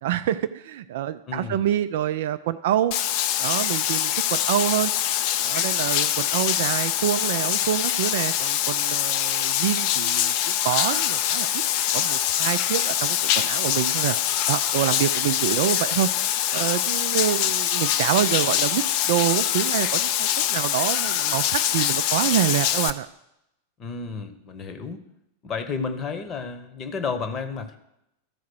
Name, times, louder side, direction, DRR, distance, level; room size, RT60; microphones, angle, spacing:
voice 1, 0.0-2.9 3.4-4.9 5.4-10.3 10.6-11.6 11.9-14.2 14.5-16.1 16.5-23.1, right 12 dB, 55° right, 11 dB, 0.3 m, -26 dB
voice 2, 1.3-1.7 23.8-25.0 25.4-27.8, left 5 dB, 30° left, 9 dB, 1.0 m, -31 dB
Bathtub (filling or washing), 2.9-22.9, left 11 dB, 45° left, 0.5 m, -24 dB
13.5 x 4.6 x 6.2 m, 0.83 s
figure-of-eight pair, 90°, 0 cm